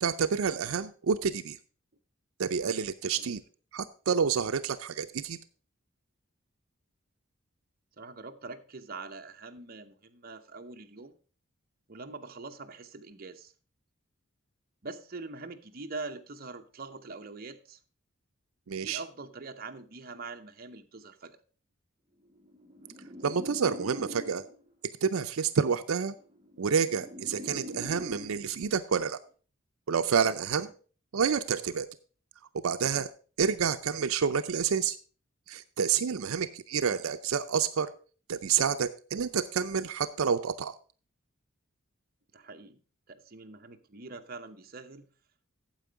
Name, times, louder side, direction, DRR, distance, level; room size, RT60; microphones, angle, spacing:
voice 1, 0.0-1.6 2.4-3.4 3.7-5.4 18.7-19.0 23.2-24.4 25.0-26.1 26.6-29.2 29.9-30.7 31.1-31.9 32.6-33.1 33.4-35.0 35.5-37.9 38.3-40.7, right 6 dB, 85° right, 0.5 m, -28 dB
voice 2, 8.0-11.2 11.9-13.5 14.8-17.8 18.8-21.4 30.6-30.7 36.1-36.3 42.3-42.8 43.1-45.1, right 3 dB, 45° right, 0.8 m, -44 dB
sound 1, 22.3-24.7 25.7-28.7, equal, 20° right, 1.3 m, -43 dB
9.0 x 7.6 x 4.6 m
head